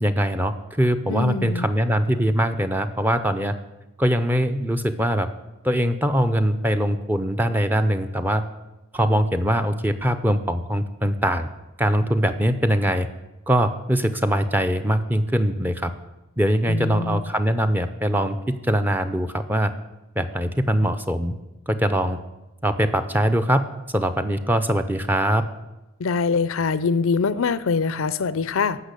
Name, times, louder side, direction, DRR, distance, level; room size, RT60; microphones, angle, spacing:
voice 1, 0.0-3.5 4.0-5.3 5.6-8.4 8.9-11.5 11.8-13.1 13.5-15.9 16.4-19.7 20.2-21.3 21.7-22.2 22.6-23.7 23.9-25.4, equal, 10° right, 8 dB, 0.6 m, -22 dB
voice 2, 1.1-1.7 16.7-17.2 26.0-28.8, left 5 dB, 65° left, 16 dB, 0.5 m, -23 dB
14.5 x 5.9 x 8.3 m, 1.0 s
head